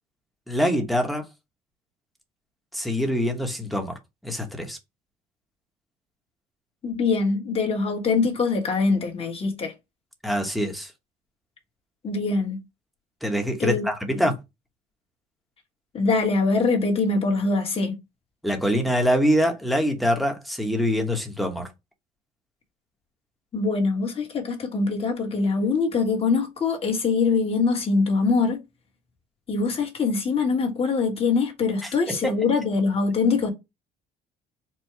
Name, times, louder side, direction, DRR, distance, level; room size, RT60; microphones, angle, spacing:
voice 1, 0.5-1.2 2.7-3.9 4.2-4.8 10.2-10.9 13.2-14.3 18.4-21.7 31.8-32.4, equal, ahead, 1.0 m, -24 dB
voice 2, 6.8-9.7 12.0-12.6 13.6-13.9 14.2-14.3 15.9-18.0 23.5-28.6 29.5-33.5, left 4 dB, 35° left, 1.4 m, -23 dB
4.5 x 2.2 x 4.6 m
cardioid pair, 110°, 17 cm